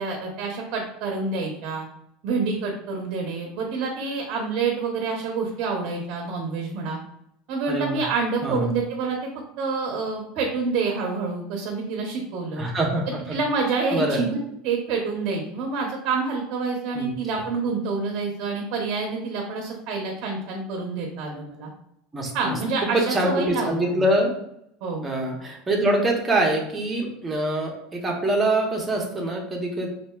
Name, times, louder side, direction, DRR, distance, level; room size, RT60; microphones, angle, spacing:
voice 1, 0.0-1.9 2.2-7.0 7.5-9.3 9.6-12.6 13.3-21.7 22.3-24.0 24.8-25.0, right 4 dB, 50° right, 0 dB, 0.6 m, -27 dB
voice 2, 7.7-8.0 8.4-8.7 12.6-13.4 13.9-14.2 16.9-17.1 22.1-22.6 22.9-24.3 25.0-29.9, right 1 dB, 15° right, -1 dB, 0.7 m, -24 dB
4.4 x 2.5 x 2.2 m, 0.76 s
supercardioid pair, 150°, 0 cm